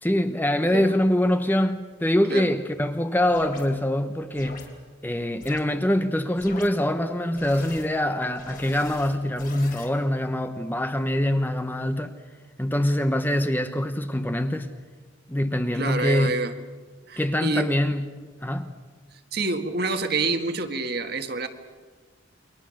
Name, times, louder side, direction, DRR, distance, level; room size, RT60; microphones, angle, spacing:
voice 1, 0.0-4.7 5.0-12.2 12.6-14.7 15.3-16.4 17.2-18.8, left 1 dB, 10° left, 0.9 m, -24 dB
sound 1, 3.3-3.7 4.3-4.7 5.4-5.6 6.3-6.7 7.3-7.9 8.3-9.9, left 3 dB, 45° left, 3.2 m, -42 dB
voice 2, 15.7-16.5 17.1-17.7 19.3-21.5, right 3 dB, 50° right, 1.8 m, -27 dB
29.0 x 23.5 x 6.5 m
head